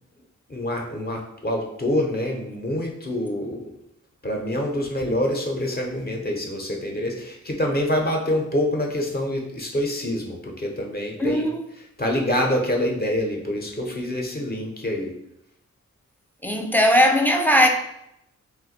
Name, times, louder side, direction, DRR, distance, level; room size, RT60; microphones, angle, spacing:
voice 1, 0.5-3.7 4.2-11.5 12.0-15.1, left 1 dB, 30° left, 0.7 m, -26 dB
voice 2, 11.2-11.6 16.4-17.7, equal, 5° left, 0.3 m, -18 dB
2.4 x 2.2 x 4.0 m
wide cardioid pair, 90°, 29 cm